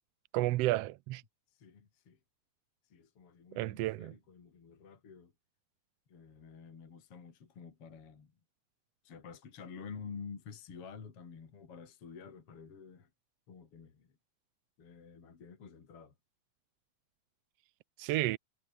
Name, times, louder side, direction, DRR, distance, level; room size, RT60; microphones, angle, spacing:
voice 1, 0.3-1.2 3.5-4.1 18.0-18.4, right 17 dB, 80° right, 1.4 m, -31 dB
voice 2, 1.5-2.2 2.9-5.3 6.1-8.3 9.0-13.1 13.5-14.1 14.8-16.1, left 6 dB, 50° left, 3.8 m, -50 dB
omnidirectional pair, 3.5 m